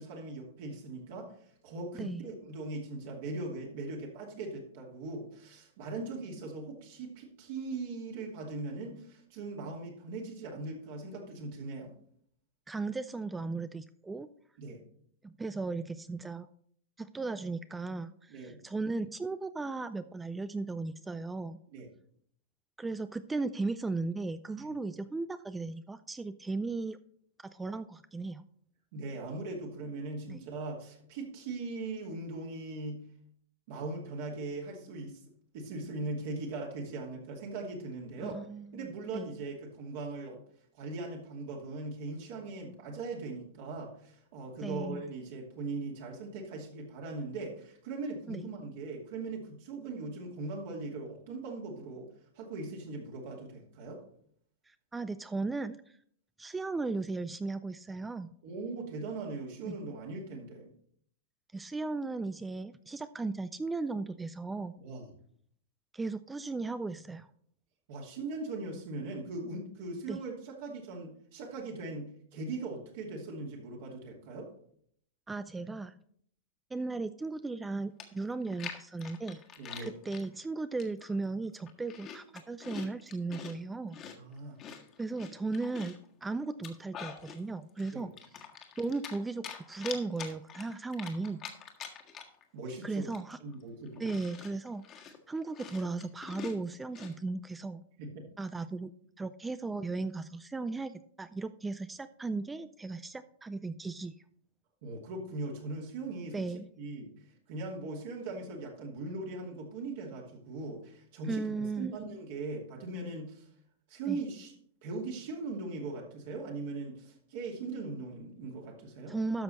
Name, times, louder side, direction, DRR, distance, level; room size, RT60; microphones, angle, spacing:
voice 1, 0.0-1.3 1.6-11.9 14.6-14.8 18.3-18.6 21.7-21.9 24.6-24.7 28.9-33.0 33.7-35.2 35.5-38.5 38.7-40.4 40.8-52.1 52.3-54.0 58.4-60.7 64.8-65.1 67.9-74.5 79.6-79.9 84.1-84.6 87.9-88.1 92.5-93.1 93.4-94.2 98.0-98.3 104.8-106.4 106.8-107.1 107.5-113.5 113.9-114.5 114.8-119.1, right 3 dB, 60° right, -1 dB, 2.5 m, -40 dB
voice 2, 12.7-14.3 15.2-16.5 17.0-21.6 22.8-27.0 27.4-28.4 30.3-30.4 38.2-38.9 39.1-39.3 44.6-45.0 48.3-48.4 54.7-56.0 56.4-58.3 59.6-59.8 61.5-64.8 65.9-67.3 70.1-70.2 75.3-76.0 76.7-79.4 79.8-84.0 85.0-88.1 88.8-91.4 92.8-93.4 94.0-97.8 98.4-98.9 99.2-104.1 106.3-106.7 111.3-111.9 114.1-114.2 119.1-119.4, right 3 dB, 10° right, 13 dB, 0.4 m, -36 dB
Chewing mastication, 77.6-77.7 78.0-80.3 80.8-81.1 81.5-83.5 83.9-86.0 86.5-87.4 87.8-89.2 89.4-92.4 92.7-92.8 93.1-97.1, left 7 dB, 30° left, 1.6 m, -45 dB
12.5 x 6.1 x 4.2 m, 0.64 s
hypercardioid pair, 115°, 0 cm